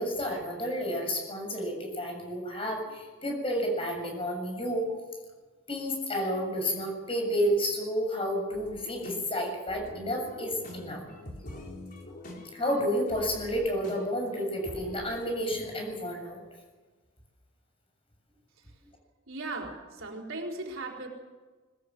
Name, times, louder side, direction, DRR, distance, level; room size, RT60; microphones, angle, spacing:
voice 1, 0.0-5.0 5.7-11.0 12.5-16.4, equal, 25° left, 2 dB, 7.4 m, -31 dB
sound 1, 8.5-15.3, left 1 dB, 45° left, 4.3 m, -45 dB
voice 2, 19.3-21.1, right 2 dB, 70° right, 0 dB, 4.4 m, -37 dB
22.0 x 20.5 x 7.7 m, 1.3 s
head